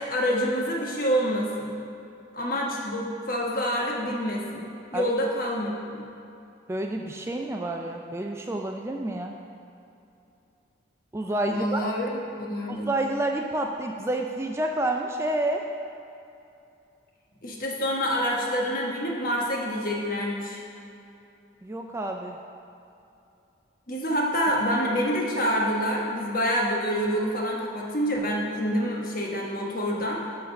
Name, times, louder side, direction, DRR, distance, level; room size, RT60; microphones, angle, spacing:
voice 1, 0.0-1.7 2.3-4.6 4.9-6.1 11.5-12.1 12.4-12.9 17.4-20.6 23.9-30.2, equal, 45° left, -2 dB, 1.2 m, -27 dB
voice 2, 6.7-9.4 11.1-11.9 12.7-15.7 21.6-22.4, right 1 dB, 15° right, 2 dB, 0.3 m, -29 dB
9.4 x 3.8 x 6.9 m, 2.7 s
head